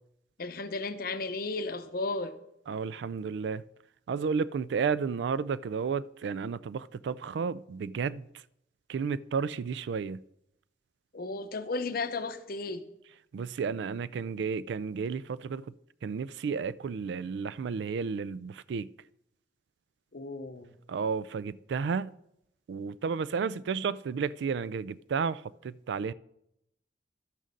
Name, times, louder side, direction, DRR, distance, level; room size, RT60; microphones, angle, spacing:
voice 1, 0.4-2.3 11.1-12.8 20.1-20.8, left 3 dB, 55° left, 0.8 m, -34 dB
voice 2, 2.7-3.6 4.1-8.2 8.9-10.2 13.3-15.6 16.0-18.9 20.9-22.1 22.7-26.1, right 5 dB, 75° right, 0.3 m, -32 dB
12.0 x 6.4 x 5.2 m
head